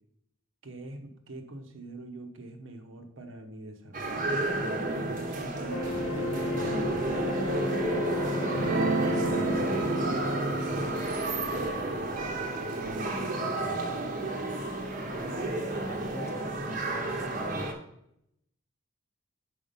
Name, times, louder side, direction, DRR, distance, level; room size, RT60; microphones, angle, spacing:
voice 1, 0.6-7.4 7.8-10.4 10.7-13.9, right 2 dB, 75° right, 6 dB, 0.9 m, -44 dB
sound 1, 3.9-17.7, right 2 dB, 40° right, 0.9 m, -32 dB
sound 2, 5.7-12.7, left 2 dB, 90° left, 1.2 m, -34 dB
Guitar, 8.5-15.1, right 3 dB, 55° right, 0.5 m, -35 dB
voice 2, 15.7-17.8, left 1 dB, 15° left, 8 dB, 0.4 m, -43 dB
5.1 x 4.8 x 5.4 m, 0.76 s
head